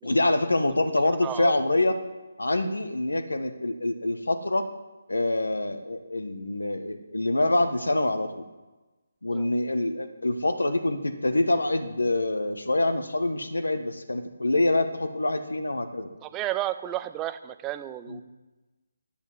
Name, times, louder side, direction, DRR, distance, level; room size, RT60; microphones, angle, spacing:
voice 1, 0.0-2.0 2.4-4.7 5.1-8.4 9.2-16.1 18.1-18.2, left 2 dB, 90° left, 9 dB, 1.4 m, -25 dB
voice 2, 1.2-1.5 9.3-9.5 16.2-18.2, right 14 dB, 15° right, 11 dB, 0.6 m, -32 dB
10.5 x 9.0 x 7.5 m, 1.2 s
figure-of-eight pair, 155°, 0 cm